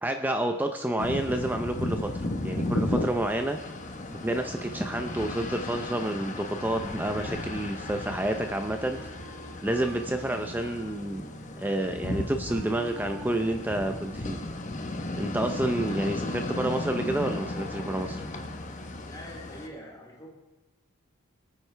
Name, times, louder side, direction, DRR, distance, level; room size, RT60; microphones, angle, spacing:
voice 1, 0.0-2.1 2.4-3.6 4.2-9.0 9.6-11.3 11.6-14.4 15.2-18.2, right 1 dB, 10° right, 5 dB, 0.5 m, -29 dB
sound 1, 1.0-19.7, left 2 dB, 35° left, 1.0 m, -35 dB
Wind instrument woodwind instrument, 7.3-14.5, right 3 dB, 80° right, 1.5 m, -49 dB
voice 2, 19.0-20.3, equal, 20° left, -3 dB, 3.5 m, -44 dB
22.5 x 9.2 x 3.3 m, 1.1 s
head